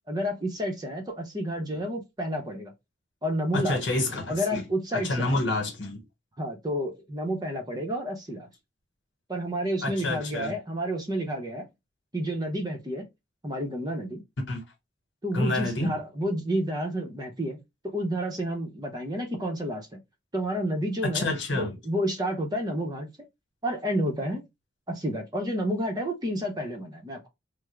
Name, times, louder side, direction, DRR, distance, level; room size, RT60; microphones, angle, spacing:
voice 1, 0.1-2.7 3.2-3.8 4.3-5.4 6.4-8.5 9.3-11.7 12.1-13.1 13.4-14.2 15.2-20.0 20.3-21.3 21.5-23.1 23.6-24.5 24.9-27.3, equal, 20° right, 0.7 m, -30 dB
voice 2, 3.5-4.6 4.9-6.0 9.8-10.5 14.5-14.6 15.3-15.9 21.1-21.7, left 2 dB, 70° left, 1.2 m, -28 dB
3.5 x 2.0 x 3.1 m
head